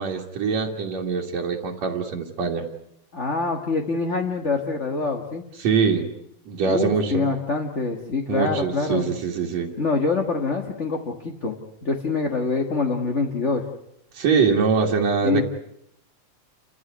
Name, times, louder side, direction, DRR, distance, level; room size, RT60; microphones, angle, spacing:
voice 1, 0.0-2.7 5.6-6.1 6.5-7.3 8.3-9.7 14.1-15.4, right 5 dB, 65° right, -3 dB, 2.8 m, -23 dB
voice 2, 3.1-5.4 6.6-9.1 9.8-11.6 11.8-13.6 15.2-15.4, left 4 dB, 30° left, 3 dB, 1.4 m, -25 dB
29.5 x 15.0 x 9.5 m, 0.80 s
omnidirectional pair, 3.3 m